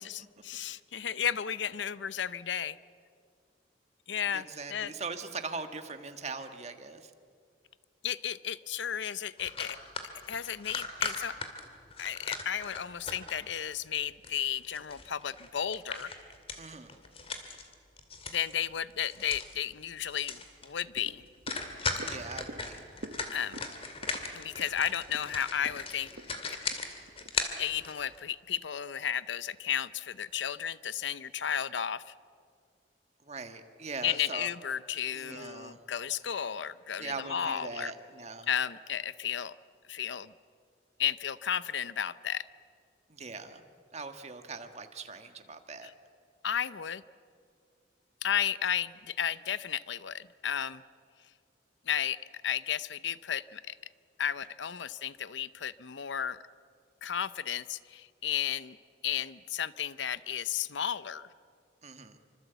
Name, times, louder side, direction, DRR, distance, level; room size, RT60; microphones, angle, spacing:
voice 1, 0.0-2.8 4.1-4.9 8.0-9.8 10.3-11.4 12.0-16.1 18.3-21.2 23.3-23.6 24.3-26.1 26.5-26.6 27.3-32.1 34.0-37.9 38.5-39.6 39.9-40.3 41.0-42.5 45.8-45.9 46.4-47.0 48.2-50.8 51.9-53.8 54.2-56.4 57.0-58.8 59.0-61.3, left 9 dB, 75° left, 16 dB, 0.6 m, -33 dB
voice 2, 4.3-7.1 16.6-17.0 22.0-22.9 33.2-34.5 35.1-35.8 37.0-38.5 43.1-43.6 43.9-45.9 61.8-62.1, right 4 dB, 35° right, 7 dB, 1.6 m, -41 dB
sound 1, 9.4-13.6 13.9-18.6 18.9-19.5 19.8-19.9 20.1-20.7 21.0-21.1 21.5-28.2, left 4 dB, 30° left, 2.3 m, -38 dB
sound 2, 21.0-27.4 27.8-27.9, right 1 dB, 60° right, 1.0 m, -49 dB
26.0 x 25.5 x 8.2 m, 2.2 s
head